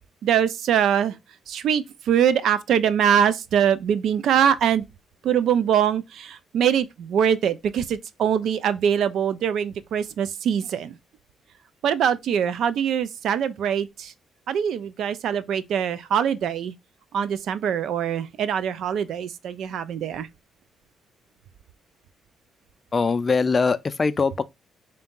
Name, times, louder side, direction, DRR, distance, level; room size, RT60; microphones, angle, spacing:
voice 1, 0.2-1.1 1.5-4.8 5.2-10.9 11.8-14.1 14.5-16.7 17.1-20.3, right 8 dB, 75° right, 0.4 m, -23 dB
voice 2, 22.9-24.4, left 4 dB, 35° left, 0.4 m, -22 dB
3.9 x 2.7 x 3.6 m
cardioid pair, 90°, 0 cm